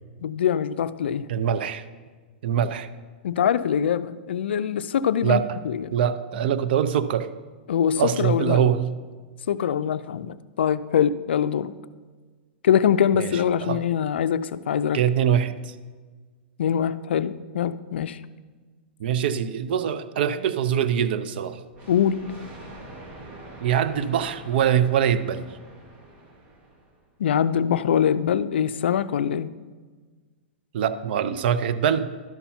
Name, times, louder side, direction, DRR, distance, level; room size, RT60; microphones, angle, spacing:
voice 1, 0.2-1.3 3.2-5.9 7.7-8.7 9.5-11.7 12.6-15.0 16.6-18.2 21.9-22.2 27.2-29.5, left 8 dB, 85° left, 14 dB, 0.4 m, -23 dB
voice 2, 1.3-1.8 2.4-2.9 5.2-5.4 5.9-7.3 8.0-8.9 13.1-13.8 14.9-15.7 19.0-21.6 23.6-25.4 30.7-32.1, right 9 dB, 65° right, 12 dB, 0.5 m, -23 dB
Thunder, 21.7-27.1, right 1 dB, 30° right, 1.6 m, -44 dB
12.0 x 5.6 x 4.3 m, 1.4 s
hypercardioid pair, 140°, 6 cm